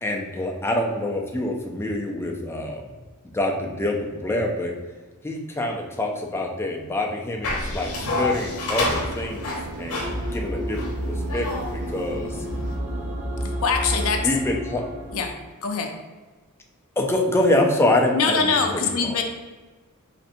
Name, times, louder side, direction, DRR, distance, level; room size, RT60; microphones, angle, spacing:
voice 1, 0.0-2.9 3.3-4.7 5.2-10.0 10.3-12.4 14.2-14.9 17.0-19.2, left 1 dB, 10° left, 1 dB, 0.4 m, -26 dB
sound 1, 7.4-12.8, left 2 dB, 90° left, 0.9 m, -30 dB
sound 2, 7.8-13.5, right 4 dB, 85° right, 0.4 m, -39 dB
sound 3, 10.0-15.3, equal, 70° right, 1.0 m, -30 dB
voice 2, 13.6-14.3 15.1-15.3 15.6-15.9 18.1-19.2, left 5 dB, 70° left, 4 dB, 0.6 m, -23 dB
4.2 x 3.3 x 2.6 m, 1.3 s
head